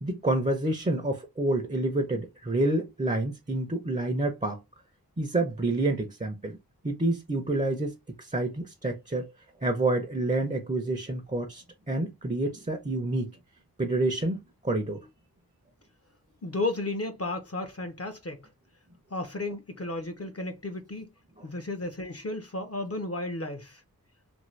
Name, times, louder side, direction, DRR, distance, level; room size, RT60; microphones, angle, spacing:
voice 1, 0.0-4.6 5.2-6.6 6.8-9.3 9.6-13.4 13.8-15.0, right 2 dB, 20° right, 0.6 m, -28 dB
voice 2, 16.4-18.4 19.1-21.1 21.4-23.8, left 2 dB, 40° left, 0.6 m, -33 dB
2.7 x 2.6 x 3.1 m
wide cardioid pair, 60°, 36 cm